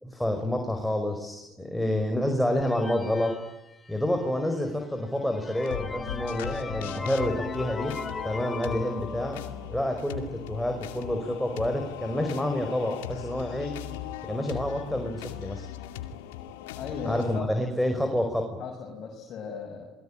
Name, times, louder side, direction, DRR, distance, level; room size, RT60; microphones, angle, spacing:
voice 1, 0.0-3.4 3.9-7.9 8.2-13.7 14.3-15.6 17.0-18.6, left 1 dB, 5° left, 4 dB, 5.2 m, -28 dB
sound 1, 2.6-4.3 4.8-4.9 5.3-9.8, left 4 dB, 25° left, 3.0 m, -38 dB
sound 2, 5.6-17.4, left 11 dB, 80° left, 2.4 m, -39 dB
voice 2, 16.8-17.4 18.6-19.9, left 6 dB, 55° left, 1 dB, 6.0 m, -36 dB
28.0 x 21.5 x 8.8 m, 1.0 s
hypercardioid pair, 75°, 0 cm